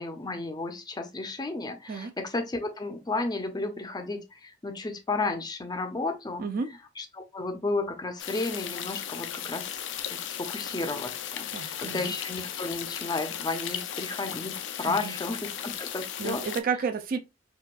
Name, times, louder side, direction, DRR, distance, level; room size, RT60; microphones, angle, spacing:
voice 1, 0.0-6.5 7.0-9.8 10.1-16.4, left 3 dB, 20° left, 0.5 m, -33 dB
voice 2, 6.4-6.7 11.5-12.1 14.9-15.1 16.2-17.2, right 5 dB, 50° right, 0.4 m, -31 dB
sound 1, 8.2-16.6, left 9 dB, 75° left, 0.4 m, -36 dB
4.1 x 2.3 x 2.2 m
head